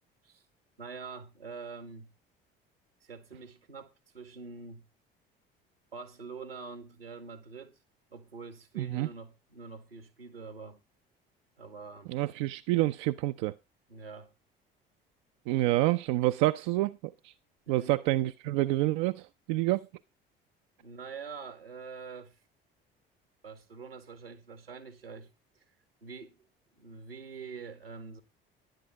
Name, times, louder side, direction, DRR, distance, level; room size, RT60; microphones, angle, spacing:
voice 1, 0.8-2.1 3.0-4.8 5.9-7.8 8.1-10.8 11.6-12.1 13.9-14.3 17.7-18.0 20.8-22.4 23.4-25.3 25.6-25.7 26.0-26.4 26.8-28.2, right 5 dB, 85° right, 2.1 m, -45 dB
voice 2, 8.8-9.1 12.1-13.5 15.5-17.3 17.7-19.9, right 17 dB, 55° right, 0.7 m, -28 dB
11.5 x 10.5 x 4.9 m
figure-of-eight pair, 55°, 29 cm